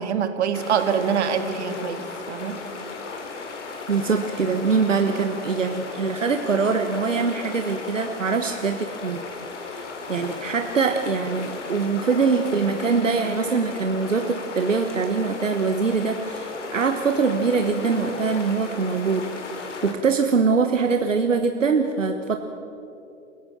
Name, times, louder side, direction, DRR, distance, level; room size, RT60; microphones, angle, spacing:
voice 1, 0.0-2.6, right 7 dB, 65° right, 8 dB, 2.1 m, -25 dB
sound 1, 0.5-19.9, left 4 dB, 70° left, 3.7 m, -35 dB
voice 2, 3.9-9.2 9.6-19.3 19.5-22.4, right 5 dB, 85° right, 6 dB, 1.3 m, -23 dB
27.5 x 16.5 x 7.3 m, 2.8 s
figure-of-eight pair, 105°, 37 cm